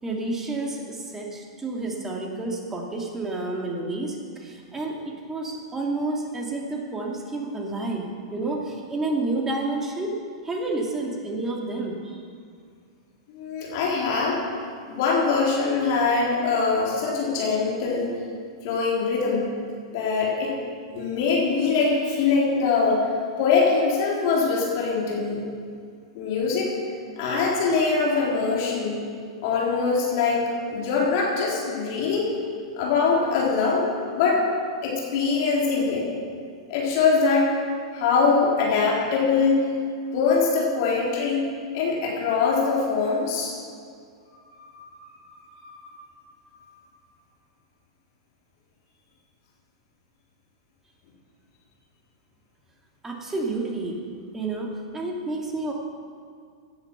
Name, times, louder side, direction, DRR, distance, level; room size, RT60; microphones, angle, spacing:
voice 1, 0.0-10.1 10.4-12.2 53.0-54.0 54.3-55.7, right 2 dB, 15° right, 0 dB, 2.7 m, -30 dB
voice 2, 13.3-14.4 14.9-18.1 18.6-19.5 19.9-20.5 20.9-23.1 23.4-25.4 26.1-26.7 27.2-29.0 29.4-32.4 32.7-33.9 34.1-34.4 34.8-36.1 36.7-37.5 37.9-39.6 40.1-41.4 41.7-43.5 44.6-44.8 45.5-45.9, left 4 dB, 50° left, -4 dB, 3.9 m, -23 dB
16.5 x 10.5 x 6.1 m, 2.2 s
figure-of-eight pair, 100°, 3 cm